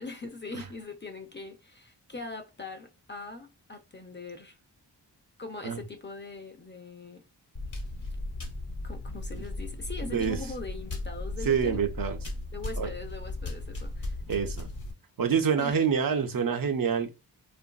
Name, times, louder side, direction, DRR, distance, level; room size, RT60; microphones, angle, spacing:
voice 1, 0.0-4.6 5.4-7.2 8.8-11.9 12.5-14.2 15.6-15.9, left 3 dB, 30° left, 0.4 m, -41 dB
sound 1, 7.5-14.9, left 2 dB, 45° left, 1.0 m, -36 dB
voice 2, 11.4-12.2 12.8-12.9 14.3-14.7 15.2-17.1, right 7 dB, 55° right, 0.5 m, -26 dB
2.9 x 2.5 x 2.3 m
wide cardioid pair, 85°, 42 cm